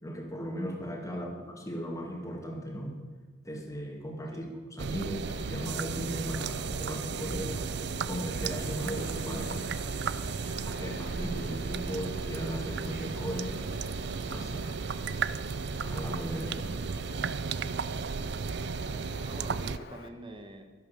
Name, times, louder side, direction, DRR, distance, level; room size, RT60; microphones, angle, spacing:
voice 1, 0.0-3.0 3.4-7.7 8.1-9.7 10.6-13.7 14.2-14.8 15.8-16.8 17.1-17.3, equal, 15° left, 2 dB, 2.1 m, -37 dB
sound 1, 4.8-19.8, right 5 dB, 65° right, 0.5 m, -34 dB
Wind, 5.2-20.1, left 4 dB, 55° left, 0.8 m, -48 dB
voice 2, 18.9-20.6, right 1 dB, 25° right, 5 dB, 1.5 m, -47 dB
12.5 x 11.5 x 7.0 m, 1.5 s
head